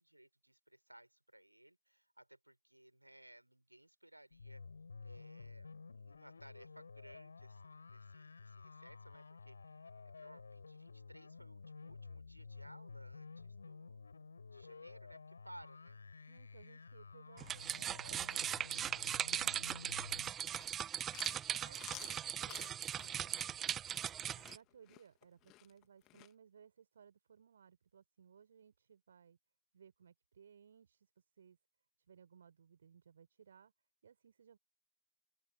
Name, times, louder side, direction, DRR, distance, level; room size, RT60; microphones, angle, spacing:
voice 1, 0.0-4.6 5.0-14.0 14.5-16.0 19.2-19.5 21.5-21.8 22.2-22.4, right 1 dB, 85° right, 6.0 m, -60 dB
sound 1, 4.3-20.3, left 4 dB, 75° left, 4.6 m, -53 dB
voice 2, 16.3-18.6 19.3-21.2 21.6-23.6 24.3-29.4 29.7-31.6 32.1-33.7 34.0-34.6, right 7 dB, 70° right, 4.7 m, -63 dB
sound 2, 17.4-24.6, right 10 dB, 25° right, 0.8 m, -39 dB
Chewing mastication, 20.3-26.3, left 18 dB, 40° left, 2.3 m, -55 dB
open air
figure-of-eight pair, 90°, 0 cm